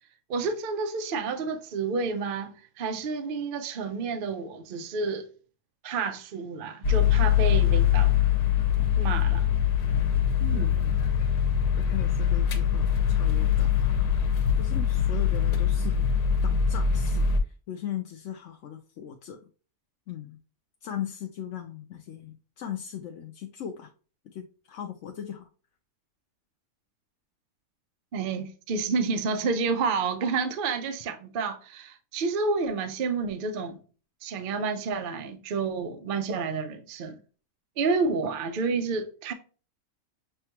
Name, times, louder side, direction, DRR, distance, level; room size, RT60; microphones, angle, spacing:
voice 1, 0.3-5.3 5.8-8.2 9.0-9.5 10.4-10.8 28.1-33.8 34.2-37.2 37.8-39.3, right 4 dB, 60° right, 0.5 m, -30 dB
sound 1, 6.8-17.4, left 8 dB, 85° left, 1.2 m, -23 dB
voice 2, 10.7-11.1 11.8-13.9 14.6-16.1 16.4-19.4 20.1-20.4 20.8-23.9 24.3-25.5, left 10 dB, 65° left, 0.8 m, -38 dB
6.5 x 2.3 x 2.8 m
omnidirectional pair, 1.6 m